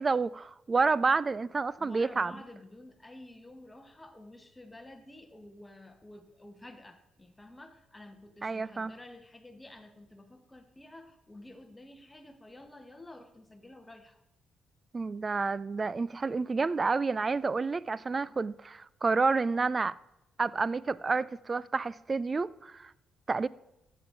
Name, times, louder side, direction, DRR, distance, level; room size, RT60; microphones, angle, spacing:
voice 1, 0.0-2.3 8.4-8.9 14.9-19.9 20.4-22.9 23.3-23.5, right 4 dB, 30° right, 0.3 m, -29 dB
voice 2, 1.8-14.2, left 1 dB, 15° left, 1.1 m, -51 dB
13.5 x 7.7 x 3.8 m
cardioid pair, 90°, 0 cm